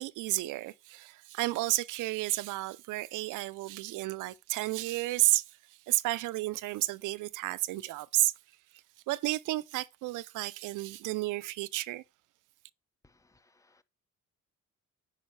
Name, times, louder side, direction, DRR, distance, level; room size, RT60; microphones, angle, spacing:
voice 1, 0.0-5.4 5.9-8.3 9.1-12.0, right 18 dB, 90° right, 0.6 m, -31 dB
voice 2, 13.0-13.8, left 2 dB, 10° left, 0.7 m, -66 dB
8.9 x 5.3 x 3.2 m
cardioid pair, 90°, 30 cm